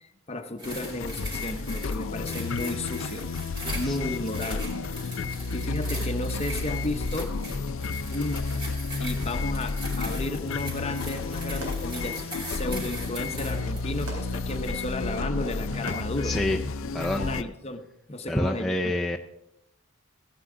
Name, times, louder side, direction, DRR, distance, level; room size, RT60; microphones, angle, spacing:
voice 1, 0.0-3.3 3.7-4.6 5.5-7.3 8.1-8.4 9.0-12.2 12.5-16.4 17.1-18.9, left 2 dB, 30° left, 7 dB, 0.8 m, -33 dB
sound 1, 0.6-17.4, left 4 dB, 65° left, 0.5 m, -31 dB
sound 2, 0.6-14.9 15.6-15.7, right 1 dB, 25° right, 3.1 m, -41 dB
voice 2, 3.6-4.0 5.3-5.4 16.2-16.7 16.9-17.5 18.3-19.2, left 1 dB, ahead, -1 dB, 0.5 m, -28 dB
Fireworks, 10.7-16.7, right 1 dB, 90° right, 3.9 m, -44 dB
15.5 x 9.7 x 3.7 m, 0.82 s
head